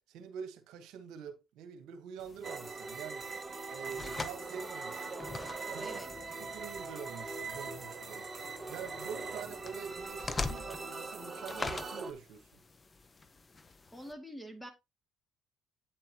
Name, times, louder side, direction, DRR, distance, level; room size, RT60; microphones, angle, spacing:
voice 1, 0.1-3.2 3.7-5.1 5.7-6.0 6.4-8.3 8.7-12.5, right 7 dB, 80° right, 1.2 m, -45 dB
sound 1, 2.2-14.1, left 3 dB, 30° left, 0.8 m, -45 dB
sound 2, 2.4-12.1, right 3 dB, 25° right, 1.4 m, -41 dB
voice 2, 5.8-6.1 13.9-14.7, equal, 5° left, 2.2 m, -45 dB
9.1 x 7.4 x 2.9 m
supercardioid pair, 80°, 0 cm